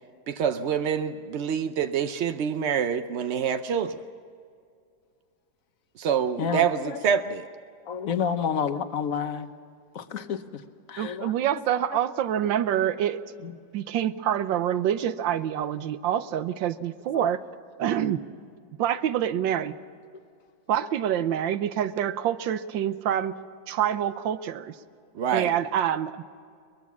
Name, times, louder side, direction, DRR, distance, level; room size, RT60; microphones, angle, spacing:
voice 1, 0.3-4.0 6.0-7.4 25.2-25.5, right 7 dB, 70° right, 9 dB, 0.6 m, -26 dB
voice 2, 6.4-7.0 7.9-9.5 9.9-10.4 10.9-11.3 13.4-13.5 17.1-17.3 25.4-25.5, left 7 dB, 55° left, 10 dB, 1.3 m, -29 dB
voice 3, 11.0-13.2 13.7-17.4 17.8-18.2 18.8-19.7 20.7-23.3 23.7-24.7 25.3-26.2, right 10 dB, 90° right, 13 dB, 1.5 m, -26 dB
22.5 x 21.0 x 7.3 m, 2.3 s
omnidirectional pair, 2.0 m